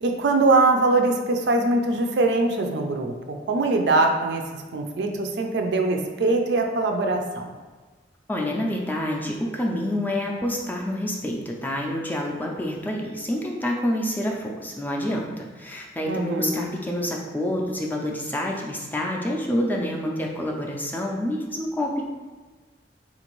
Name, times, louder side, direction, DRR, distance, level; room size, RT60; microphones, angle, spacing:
voice 1, 0.0-7.5 16.1-16.7, right 2 dB, 70° right, 4 dB, 0.4 m, -22 dB
voice 2, 8.3-22.0, left 1 dB, 10° left, -1 dB, 0.3 m, -27 dB
3.7 x 2.5 x 3.0 m, 1.3 s
head